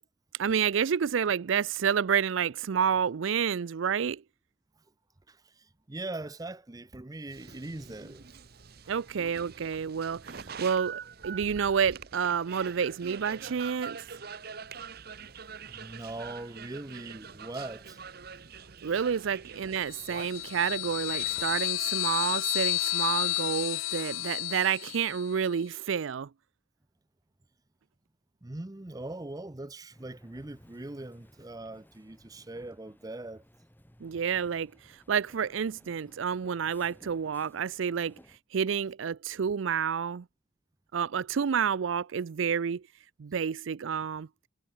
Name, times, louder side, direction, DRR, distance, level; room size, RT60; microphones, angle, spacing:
voice 1, 0.4-4.2 8.9-14.0 18.8-26.3 34.0-38.2 38.5-40.3 40.9-42.8 43.2-44.3, right 7 dB, 75° right, 0.4 m, -29 dB
voice 2, 5.3-8.3 15.7-18.0 28.4-33.4, right 2 dB, 20° right, 0.6 m, -41 dB
sound 1, 7.3-21.6, right 6 dB, 50° right, 1.0 m, -45 dB
sound 2, 19.9-25.3, left 20 dB, 85° left, 0.3 m, -31 dB
sound 3, 29.9-38.4, equal, 10° left, 5.2 m, -58 dB
head